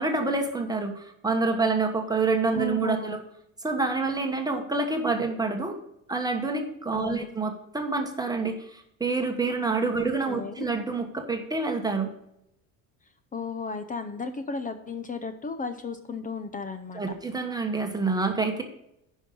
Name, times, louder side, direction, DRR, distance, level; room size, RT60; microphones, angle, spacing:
voice 1, 0.0-3.2 3.6-5.8 6.1-12.1 16.9-18.6, right 3 dB, 10° right, 4 dB, 1.2 m, -27 dB
voice 2, 2.5-3.2 6.9-7.3 9.9-10.7 13.3-17.0, left 4 dB, 20° left, 9 dB, 0.6 m, -35 dB
10.0 x 5.5 x 5.4 m, 0.79 s
cardioid pair, 145°, 36 cm